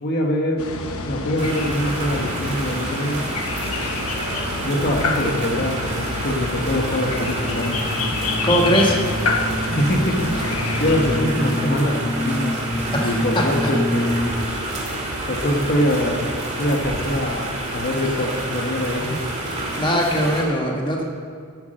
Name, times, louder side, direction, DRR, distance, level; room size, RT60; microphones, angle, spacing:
voice 1, 0.0-0.6 1.0-3.2 4.6-7.8 9.6-10.3 10.8-12.5 13.0-14.1 15.3-16.2 16.6-19.2, left 1 dB, 45° left, 1 dB, 1.2 m, -23 dB
sound 1, 0.6-11.2, left 3 dB, 75° left, 1.0 m, -28 dB
sound 2, 1.4-20.4, right 1 dB, 30° right, 2.0 m, -29 dB
sound 3, 7.2-14.6, equal, ahead, 0.5 m, -27 dB
voice 2, 8.2-9.0 12.9-13.1 13.6-13.7 19.8-21.0, equal, 20° left, 0 dB, 1.3 m, -20 dB
10.5 x 8.2 x 6.5 m, 2.3 s
head